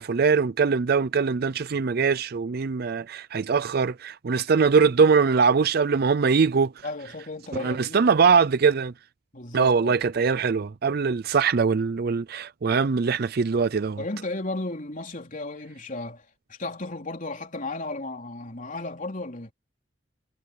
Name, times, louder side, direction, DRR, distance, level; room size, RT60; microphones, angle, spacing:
voice 1, 0.0-6.8 7.6-8.9 9.5-14.0, right 5 dB, 50° right, 0.5 m, -22 dB
voice 2, 6.8-8.0 9.3-10.0 14.0-19.5, left 2 dB, 40° left, 3.7 m, -34 dB
head